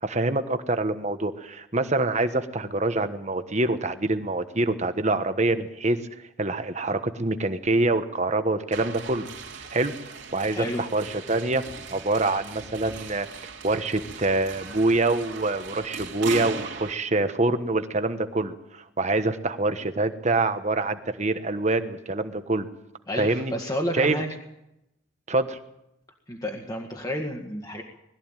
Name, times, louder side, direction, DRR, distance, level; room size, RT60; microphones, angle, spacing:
voice 1, 0.0-6.0 6.4-9.3 9.6-9.9 10.3-11.6 11.9-13.3 13.6-22.7 23.2-23.5 23.9-24.2 25.3-25.6, right 2 dB, 35° right, 9 dB, 1.3 m, -25 dB
sound 1, 8.7-16.9, right 5 dB, 60° right, 3.3 m, -39 dB
voice 2, 10.5-10.9 23.1-24.3 26.3-27.8, equal, 20° left, 2 dB, 1.9 m, -30 dB
21.0 x 14.0 x 9.1 m, 0.84 s
head